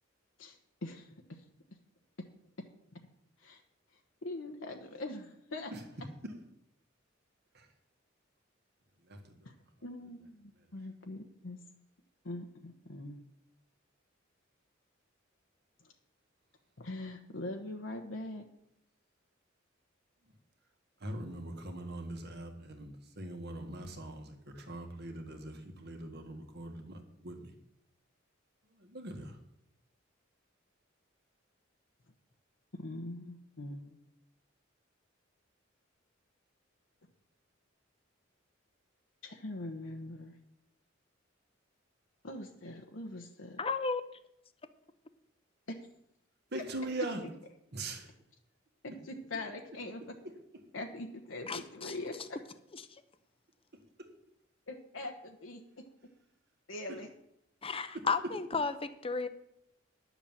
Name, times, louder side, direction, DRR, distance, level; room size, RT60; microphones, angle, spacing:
voice 1, 0.4-1.4 3.4-3.6 4.2-5.7 9.4-9.5 9.8-11.6 12.2-13.2 16.8-18.4 32.7-34.0 39.2-40.3 42.2-43.6 45.7-45.8 48.8-50.1 50.7-52.1 54.7-55.6 56.7-57.1, left 2 dB, 75° left, 3 dB, 1.1 m, -42 dB
voice 2, 9.1-9.5 21.0-27.5 28.8-29.4 46.5-47.2 47.7-48.1, right 2 dB, 55° right, 5 dB, 1.8 m, -41 dB
voice 3, 43.6-44.0 51.5-52.0 52.7-52.8 57.6-59.3, left 4 dB, 30° left, 11 dB, 0.8 m, -33 dB
10.5 x 7.1 x 7.3 m, 0.78 s
head